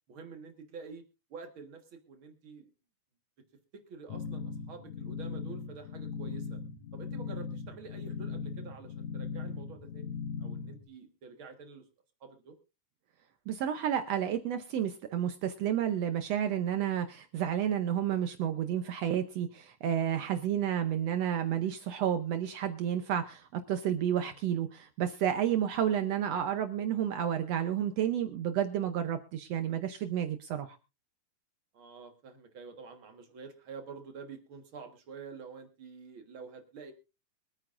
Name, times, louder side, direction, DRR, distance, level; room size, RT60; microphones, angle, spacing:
voice 1, 0.1-1.0 1.3-2.7 3.7-6.6 6.9-10.1 10.4-11.8 12.2-12.6 24.2-24.4 31.7-36.9, right 5 dB, 50° right, 5 dB, 2.0 m, -48 dB
sound 1, 4.1-10.8, left 5 dB, 70° left, 4.5 m, -39 dB
voice 2, 13.5-30.7, right 10 dB, 70° right, 8 dB, 1.6 m, -31 dB
24.0 x 9.1 x 2.5 m, 0.29 s
omnidirectional pair, 3.6 m